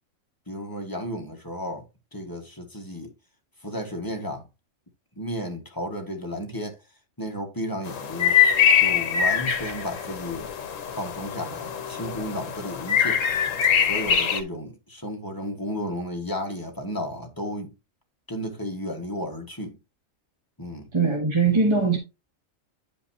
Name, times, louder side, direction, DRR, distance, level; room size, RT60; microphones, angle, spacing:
voice 1, 0.5-1.8 2.1-3.1 3.6-4.4 5.2-6.8 7.2-8.4 8.8-10.5 11.0-13.3 13.8-17.7 18.3-19.8 20.6-20.9, equal, 15° left, 1.6 m, -33 dB
sound 1, 7.9-14.4, left 8 dB, 70° left, 1.2 m, -23 dB
voice 2, 20.9-22.0, right 4 dB, 25° right, 1.1 m, -21 dB
10.0 x 5.2 x 2.8 m
omnidirectional pair, 1.4 m